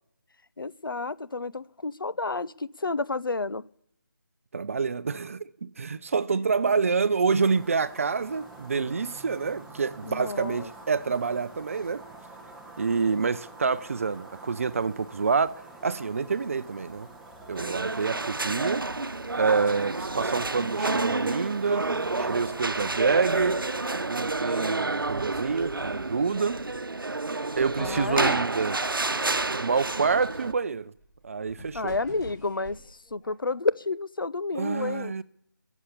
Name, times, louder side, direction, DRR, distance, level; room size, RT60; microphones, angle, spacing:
voice 1, 0.6-3.6 10.0-10.7 18.1-18.2 27.8-28.4 31.7-35.1, left 3 dB, 85° left, 0.8 m, -30 dB
voice 2, 4.5-12.0 12.8-17.1 17.5-23.6 24.1-26.6 27.6-28.8 29.5-30.9 31.2-31.9 34.5-35.2, right 5 dB, 40° right, 0.6 m, -27 dB
sound 1, 7.3-24.1, right 2 dB, 5° right, 1.1 m, -48 dB
sound 2, 17.6-30.5, right 3 dB, 90° right, 0.9 m, -29 dB
sound 3, 18.7-19.4 19.9-21.3 21.7-23.9 24.2-24.7 25.0-27.0 27.5-28.6 29.4-33.9, equal, 15° left, 4.6 m, -49 dB
21.5 x 7.2 x 8.5 m
figure-of-eight pair, 165°, 11 cm